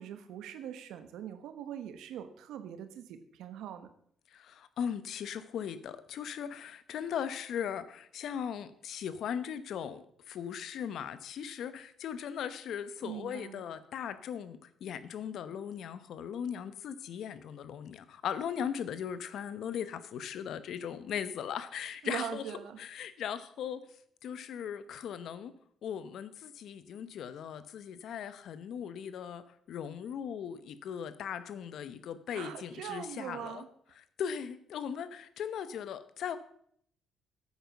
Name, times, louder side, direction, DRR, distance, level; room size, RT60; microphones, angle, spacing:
voice 1, 0.0-3.9 13.0-13.6 22.0-22.8 32.3-33.7, right 9 dB, 85° right, 10 dB, 1.1 m, -42 dB
voice 2, 4.3-22.4 22.8-23.8 24.2-25.5 25.8-33.6 34.0-36.4, left 8 dB, 70° left, 13 dB, 0.9 m, -38 dB
9.5 x 8.6 x 6.0 m, 0.65 s
cardioid pair, 90°, 0 cm